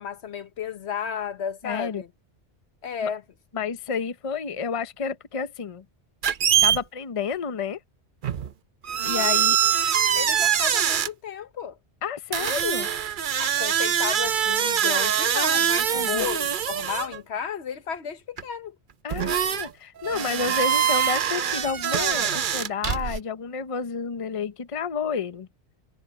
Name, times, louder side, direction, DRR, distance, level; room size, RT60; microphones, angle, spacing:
voice 1, 0.0-2.1 2.8-3.2 9.1-9.6 10.1-11.8 13.4-18.8, left 7 dB, 70° left, 1.2 m, -33 dB
voice 2, 1.6-2.0 3.0-3.1 3.5-5.8 6.6-7.8 9.0-9.6 12.0-12.9 15.9-16.3 19.0-25.5, left 6 dB, 35° left, 0.8 m, -30 dB
sound 1, 6.2-6.8 8.2-8.5 8.8-11.1 12.3-17.2 18.4-18.5 19.1-19.7 20.0-23.2, right 9 dB, 50° right, 0.8 m, -23 dB
omnidirectional pair, 1.2 m